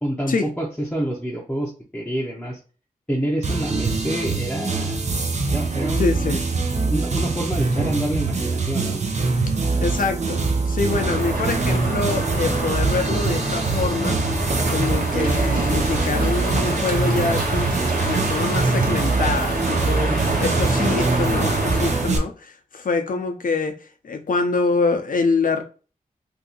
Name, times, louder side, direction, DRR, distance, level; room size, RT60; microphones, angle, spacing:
voice 1, 0.0-2.6 3.1-5.0 5.5-6.1 6.9-9.0, equal, 5° left, 0.8 m, -27 dB
sound 1, 3.4-22.2, right 4 dB, 50° right, 0.7 m, -24 dB
voice 2, 6.0-6.4 9.8-14.2 14.7-20.1 20.4-25.6, left 4 dB, 65° left, 0.7 m, -25 dB
Crow, 10.8-22.2, right 1 dB, 70° right, 1.1 m, -26 dB
2.8 x 2.6 x 3.7 m
wide cardioid pair, 70°, 15 cm